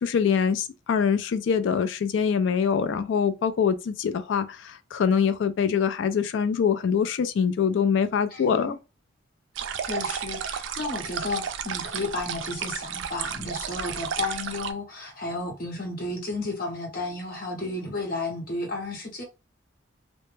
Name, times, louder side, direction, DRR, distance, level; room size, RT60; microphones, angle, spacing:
voice 1, 0.0-8.8, left 6 dB, 70° left, 0.3 m, -24 dB
voice 2, 8.3-8.8 9.7-19.2, left 2 dB, 45° left, 0.8 m, -33 dB
sound 1, 9.6-14.7, right 8 dB, 65° right, 0.3 m, -33 dB
2.1 x 2.1 x 3.0 m
head